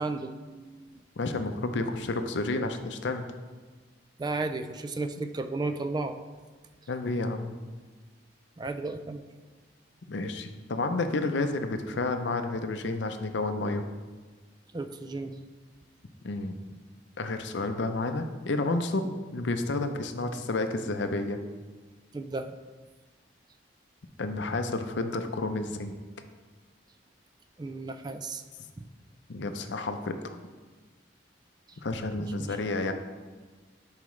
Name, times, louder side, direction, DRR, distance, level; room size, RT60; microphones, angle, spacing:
voice 1, 0.0-1.0 4.2-6.2 8.6-9.2 14.7-15.4 22.1-22.5 27.6-28.4 32.2-32.6, right 3 dB, 25° right, 9 dB, 0.3 m, -34 dB
voice 2, 1.2-3.2 6.9-7.5 10.1-13.8 16.2-16.6 17.2-21.4 24.2-25.9 29.3-30.4 31.8-32.9, left 2 dB, 85° left, 7 dB, 0.6 m, -30 dB
10.5 x 4.9 x 3.2 m, 1.4 s
head